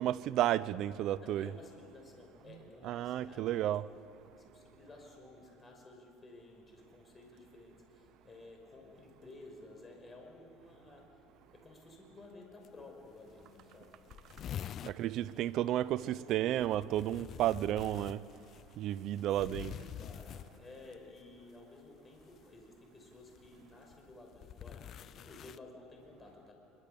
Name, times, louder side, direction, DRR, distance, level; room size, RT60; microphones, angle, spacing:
voice 1, 0.0-1.5 2.5-2.6 2.8-3.9 14.8-18.2 18.8-19.7, right 13 dB, 55° right, 0.6 m, -32 dB
voice 2, 1.2-3.6 3.9-4.1 4.4-11.2 11.5-14.0 14.8-16.7 19.3-26.5, left 2 dB, 20° left, 5.7 m, -54 dB
sound 1, 12.6-12.7 13.0-13.1 13.4-13.5 13.7-15.0 16.5-20.9 22.2-22.5 23.4-25.6, left 10 dB, 45° left, 0.5 m, -46 dB
25.0 x 24.0 x 6.9 m
cardioid pair, 125°, 0 cm